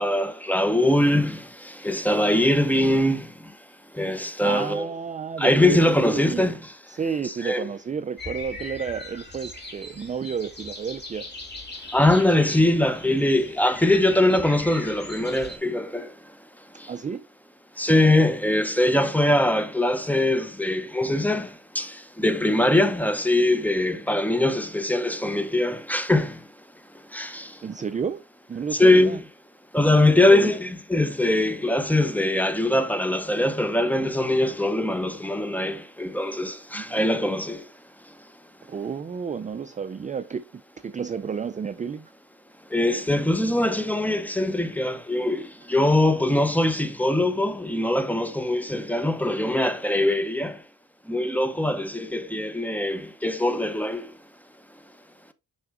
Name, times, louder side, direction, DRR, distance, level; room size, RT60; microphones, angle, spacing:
voice 1, 0.0-3.5 3.9-4.9 5.4-6.7 7.2-7.7 11.9-16.1 16.8-16.9 17.8-26.4 27.1-27.6 28.7-29.3 29.7-37.7 42.7-50.6 51.1-54.1, left 1 dB, 5° left, 0.8 m, -22 dB
voice 2, 4.4-6.5 6.9-11.3 16.9-17.3 27.6-28.2 28.5-29.2 30.3-30.5 36.7-37.2 38.7-42.1, right 6 dB, 20° right, 0.3 m, -31 dB
sound 1, 8.2-15.6, left 2 dB, 30° left, 2.4 m, -39 dB
7.1 x 5.8 x 2.5 m
cardioid pair, 95°, 36 cm